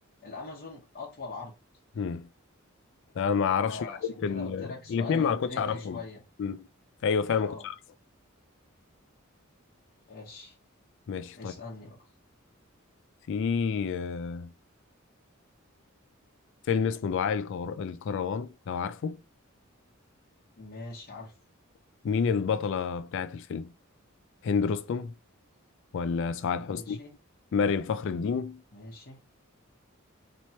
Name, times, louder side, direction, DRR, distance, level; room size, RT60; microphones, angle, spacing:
voice 1, 0.2-1.5 3.6-6.2 7.4-7.7 10.1-10.6 11.3-12.0 20.6-21.3 26.5-27.1 28.7-29.2, left 3 dB, 45° left, 1.0 m, -42 dB
voice 2, 2.0-2.3 3.2-6.0 6.4-6.7 7.0-7.7 11.1-11.5 13.3-14.5 16.7-19.2 22.0-23.7 24.4-25.1 25.9-27.0 27.5-28.6, left 6 dB, 60° left, 0.3 m, -29 dB
4.3 x 3.0 x 2.8 m
head